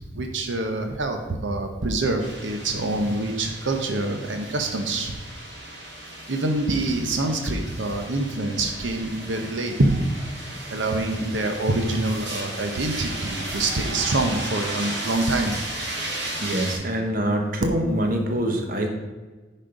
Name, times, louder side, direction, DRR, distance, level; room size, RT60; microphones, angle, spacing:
voice 1, 0.0-5.1 6.3-9.9 10.7-15.5, right 2 dB, 85° right, 4 dB, 0.9 m, -25 dB
sound 1, 2.2-16.8, right 1 dB, 65° right, 2.6 m, -35 dB
voice 2, 16.4-18.9, right 1 dB, 50° right, 3 dB, 1.1 m, -25 dB
10.0 x 4.4 x 5.1 m, 1.3 s
head